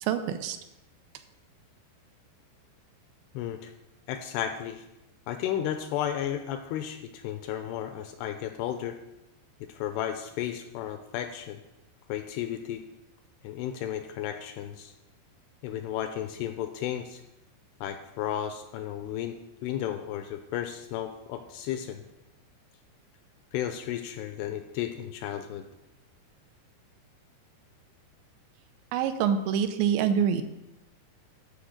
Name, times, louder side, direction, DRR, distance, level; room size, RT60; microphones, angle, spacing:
voice 1, 0.0-0.6 28.9-30.4, right 8 dB, 85° right, 9 dB, 2.9 m, -26 dB
voice 2, 3.3-3.7 4.1-4.9 5.3-9.0 9.7-11.6 12.1-12.8 13.4-14.9 15.6-17.2 17.8-19.4 19.6-22.0 23.5-25.6, left 10 dB, 85° left, 8 dB, 2.4 m, -33 dB
12.5 x 4.6 x 6.5 m, 0.91 s
omnidirectional pair, 5.1 m